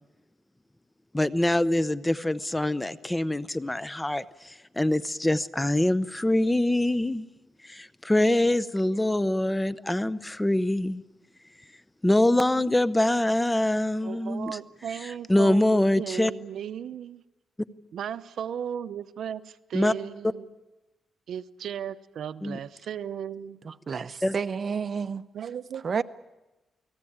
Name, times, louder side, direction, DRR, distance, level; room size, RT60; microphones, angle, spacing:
voice 1, 1.1-7.3 7.6-11.0 12.0-14.6 15.3-16.3 19.7-19.9 22.4-22.6 24.2-24.3, left 1 dB, 10° left, 0.8 m, -24 dB
voice 2, 14.0-17.2 17.9-20.5 21.3-23.6 25.3-25.8, right 9 dB, 80° right, 0.8 m, -36 dB
voice 3, 23.6-25.2 25.8-26.0, right 6 dB, 45° right, 0.9 m, -30 dB
29.5 x 19.5 x 8.8 m
cardioid pair, 115°, 0 cm